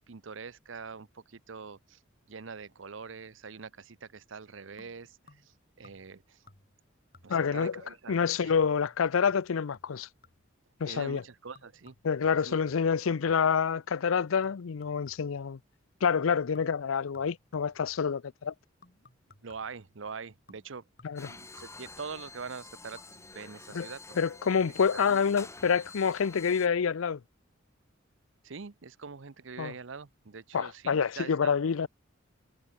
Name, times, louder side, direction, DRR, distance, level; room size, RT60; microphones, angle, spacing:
voice 1, 0.0-2.0 2.3-6.4 7.2-8.2 8.4-8.5 10.9-12.0 12.3-13.1 19.4-20.8 21.2-24.2 24.9-25.2 28.4-31.5, right 5 dB, 70° right, 0.8 m, -44 dB
sound 1, 4.8-5.6 5.8-6.2 6.5-6.9 7.1-7.6 8.1-10.6 11.2-13.6 14.2-15.5 16.0-16.3 16.5-18.2 18.8-19.8 20.5-22.3 22.8-23.1 23.4-23.5, left 3 dB, 45° left, 6.0 m, -60 dB
voice 2, 7.3-7.8 8.1-10.1 10.8-11.2 12.0-15.6 16.0-18.5 21.0-21.3 23.7-23.9 24.2-27.2 29.6-29.7 30.5-31.9, left 6 dB, 85° left, 0.5 m, -27 dB
sound 2, 21.2-26.7, left 3 dB, 15° left, 2.0 m, -48 dB
head